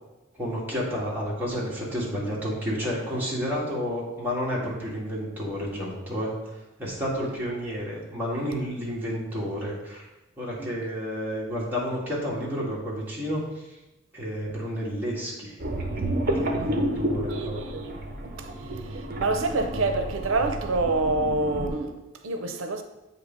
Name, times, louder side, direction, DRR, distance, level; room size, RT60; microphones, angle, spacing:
voice 1, 0.4-10.1 10.4-13.8 14.1-15.5 16.4-17.6, equal, 10° right, 1.6 m, -31 dB
sound 1, 15.6-21.7, right 1 dB, 45° right, 0.7 m, -30 dB
voice 2, 16.3-16.9 17.3-18.0 18.4-22.8, right 2 dB, 85° right, 0.5 m, -28 dB
7.9 x 2.8 x 5.1 m
head